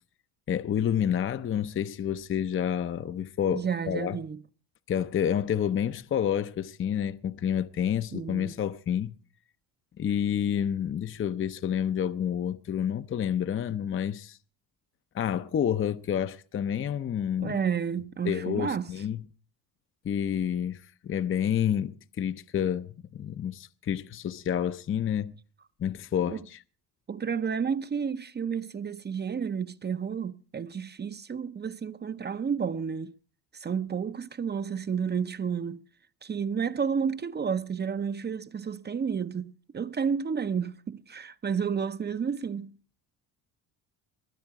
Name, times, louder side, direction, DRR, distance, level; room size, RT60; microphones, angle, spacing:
voice 1, 0.5-4.2 4.9-9.2 10.0-14.4 15.1-17.6 18.2-19.2 20.0-25.4 25.8-26.6, left 9 dB, 30° left, 0.6 m, -29 dB
voice 2, 3.5-4.4 8.1-8.5 17.4-18.9 26.3-26.4 27.1-33.1 33.5-35.8 36.2-42.7, right 6 dB, 25° right, 0.6 m, -31 dB
21.5 x 9.6 x 4.7 m
cardioid pair, 115°, 39 cm